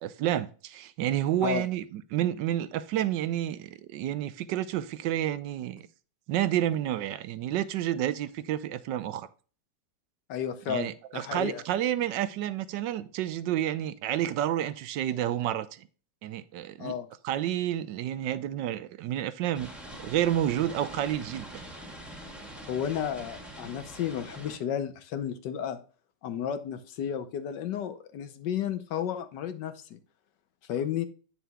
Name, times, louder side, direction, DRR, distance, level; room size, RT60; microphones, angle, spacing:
voice 1, 0.0-5.9 6.3-9.3 10.7-15.9 16.2-17.0 17.2-19.7 20.0-21.6, right 12 dB, 85° right, 1.3 m, -30 dB
voice 2, 10.3-11.6 16.8-17.1 22.7-25.8 26.2-30.0 30.7-31.1, left 9 dB, 75° left, 1.5 m, -32 dB
sound 1, 19.5-24.6, right 1 dB, ahead, 1.3 m, -44 dB
9.1 x 6.7 x 2.3 m
omnidirectional pair, 1.9 m